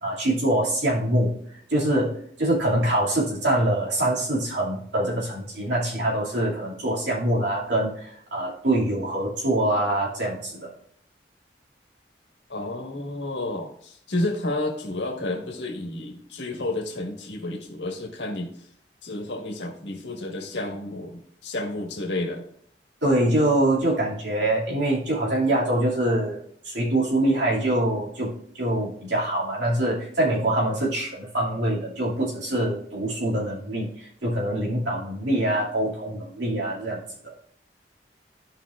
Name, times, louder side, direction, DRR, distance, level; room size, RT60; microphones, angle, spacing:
voice 1, 0.0-1.4 1.7-10.7 23.0-37.3, right 1 dB, 90° right, -5 dB, 2.4 m, -24 dB
voice 2, 12.5-18.5 19.0-22.5, left 2 dB, 80° left, 2 dB, 1.5 m, -31 dB
13.5 x 5.3 x 2.5 m, 0.65 s
head